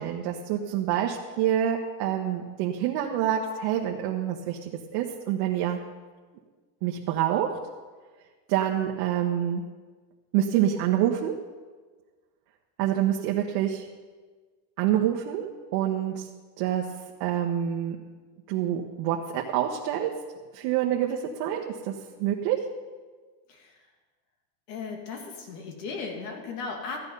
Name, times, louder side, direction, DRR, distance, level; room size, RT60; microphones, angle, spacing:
voice 1, 0.0-5.8 6.8-7.5 8.5-9.6 10.3-11.3 12.8-13.9 14.8-16.3 16.6-16.9 17.2-18.0 18.5-20.1 20.5-21.9 22.2-22.6, right 11 dB, 65° right, 0 dB, 1.2 m, -27 dB
voice 2, 23.5-23.9 24.7-27.0, left 4 dB, 85° left, 2 dB, 2.6 m, -36 dB
14.0 x 8.9 x 5.5 m, 1.4 s
supercardioid pair, 145°, 47 cm